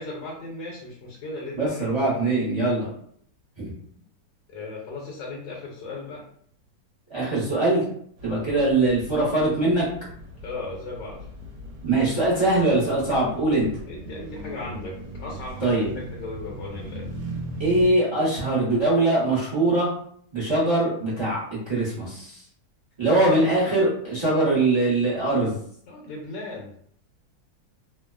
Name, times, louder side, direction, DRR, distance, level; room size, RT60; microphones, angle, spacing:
voice 1, 0.0-1.9 3.9-4.0 4.5-6.2 8.5-8.6 10.4-11.2 13.9-17.1 25.9-26.7, left 2 dB, 75° left, -3 dB, 1.3 m, -36 dB
voice 2, 1.6-2.9 3.6-3.7 7.1-7.8 8.2-9.9 11.8-13.7 15.6-15.9 17.6-19.9 20.3-22.4 23.0-25.6, right 2 dB, 25° right, -9 dB, 0.6 m, -22 dB
sound 1, 8.2-17.9, equal, 70° right, 1.1 m, -39 dB
3.1 x 2.0 x 2.3 m, 0.64 s
omnidirectional pair, 1.9 m